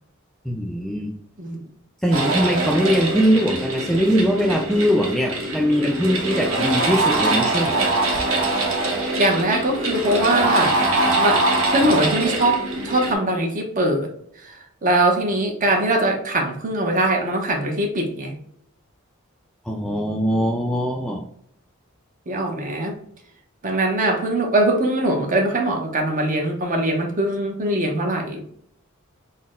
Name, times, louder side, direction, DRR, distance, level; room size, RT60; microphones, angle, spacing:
voice 1, 0.5-1.1 2.0-7.9 19.7-21.2, equal, ahead, 1 dB, 0.3 m, -21 dB
sound 1, 2.1-13.1, right 2 dB, 80° right, 1.0 m, -23 dB
voice 2, 9.1-10.8 11.1-14.1 14.4-14.5 14.8-18.3 22.3-23.0 23.6-28.4, right 1 dB, 40° right, 2 dB, 0.8 m, -22 dB
4.1 x 2.1 x 3.6 m, 0.68 s
head